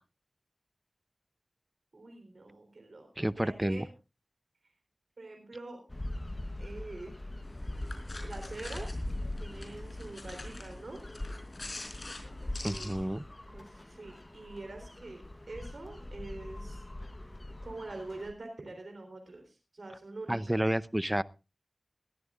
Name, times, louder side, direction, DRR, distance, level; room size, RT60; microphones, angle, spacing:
voice 1, 1.9-3.9 5.2-5.8 6.6-7.2 8.2-9.0 9.4-11.0 12.5-13.0 13.5-16.8 17.6-20.6, right 2 dB, 80° right, 4 dB, 3.5 m, -45 dB
voice 2, 3.2-3.9 12.6-13.2 20.3-21.2, right 1 dB, 15° right, 17 dB, 0.6 m, -30 dB
sound 1, 5.9-18.3, left 1 dB, 30° left, 1.0 m, -42 dB
sound 2, 7.4-12.9, left 2 dB, 55° left, 4.5 m, -46 dB
21.0 x 13.5 x 2.5 m, 0.29 s
wide cardioid pair, 50°, 0 cm